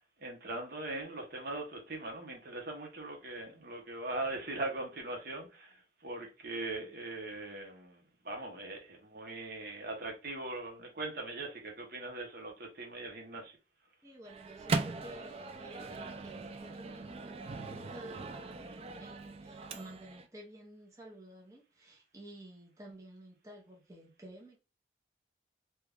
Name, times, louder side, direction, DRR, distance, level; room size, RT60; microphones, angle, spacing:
voice 1, 0.2-13.5, right 2 dB, 60° right, 1.0 m, -40 dB
voice 2, 14.0-24.6, right 1 dB, 20° right, 0.8 m, -52 dB
Microwave oven, 14.2-20.3, right 3 dB, 35° right, 0.3 m, -39 dB
2.9 x 2.4 x 3.5 m
head